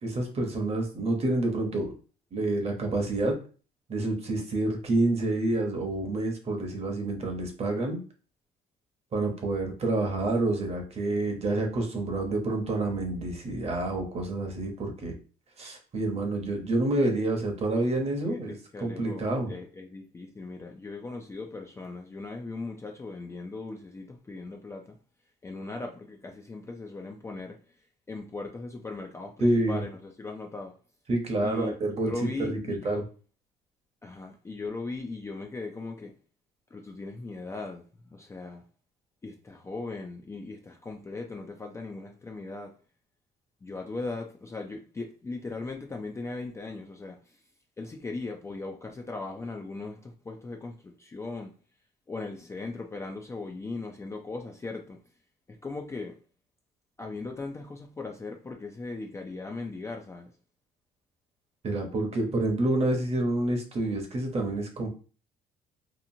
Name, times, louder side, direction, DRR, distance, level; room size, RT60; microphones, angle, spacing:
voice 1, 0.0-1.9 2.3-3.4 3.9-8.0 9.1-15.1 15.6-19.5 29.4-29.8 31.1-32.1 32.4-33.0 61.6-64.9, right 2 dB, 35° right, 0.9 m, -28 dB
voice 2, 18.2-25.0 25.4-27.6 28.1-30.8 31.4-31.7 32.0-33.1 34.0-36.1 36.7-37.9 38.1-38.6 39.2-42.7 43.6-47.4 47.8-51.5 52.1-55.0 55.5-56.2 57.0-60.3, left 3 dB, 15° left, 0.3 m, -38 dB
2.8 x 2.4 x 2.6 m
cardioid pair, 110°, 17 cm